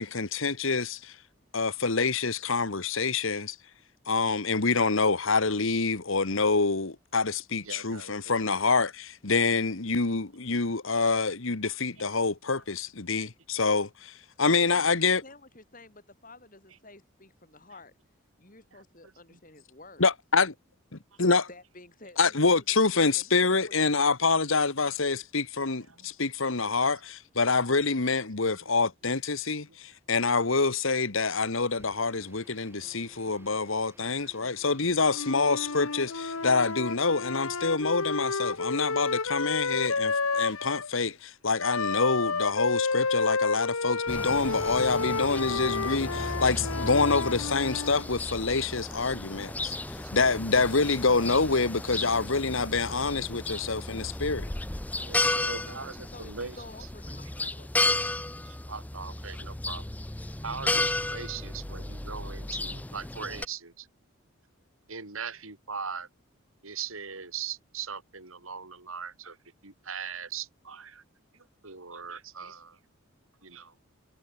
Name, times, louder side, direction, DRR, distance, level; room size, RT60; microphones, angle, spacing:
voice 1, 0.0-0.9 1.5-3.6 4.1-15.2 20.0-20.5 20.9-21.4 22.2-49.7 50.1-54.4, left 4 dB, 70° left, 1.5 m, -26 dB
voice 2, 7.6-8.6 11.6-12.1 13.2-13.3 18.7-18.8 19.3-19.4 25.9-26.1 28.4-28.7 29.0-29.1 33.3-33.4 34.2-34.5 38.8-38.9 39.3-39.4 39.7-39.9 40.4-40.6 44.4-44.6 44.9-46.1 49.9-50.4 50.7-51.0 53.5-53.6 55.0-56.6 58.4-59.8 60.4-63.9 64.9-66.1 66.6-69.4 69.6-71.0 71.3-72.8 73.4-73.8, right 6 dB, 80° right, 3.7 m, -41 dB
voice 3, 14.5-17.9 18.4-20.1 21.2-23.6 56.1-58.0, left 2 dB, 40° left, 5.9 m, -50 dB
sound 1, 31.7-38.8, right 1 dB, 10° right, 7.2 m, -56 dB
Wind instrument woodwind instrument, 35.1-40.9 41.6-48.1, left 4 dB, 85° left, 1.7 m, -30 dB
sound 2, 44.1-63.5, left 2 dB, 5° left, 0.5 m, -34 dB
head